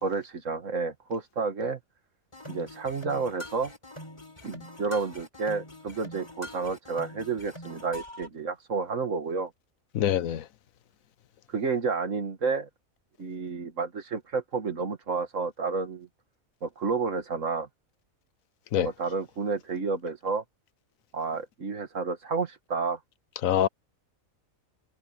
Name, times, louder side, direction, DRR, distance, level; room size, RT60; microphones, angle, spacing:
voice 1, 0.0-1.8 2.5-3.7 4.4-9.5 11.5-12.7 13.2-16.1 16.6-17.7 18.8-20.4 21.1-23.0, right 4 dB, 65° right, 2.1 m, -30 dB
sound 1, 2.3-8.3, left 1 dB, 20° left, 4.7 m, -44 dB
voice 2, 9.9-10.4 18.7-18.9 23.4-23.7, left 11 dB, 80° left, 1.2 m, -24 dB
omnidirectional pair, 1.4 m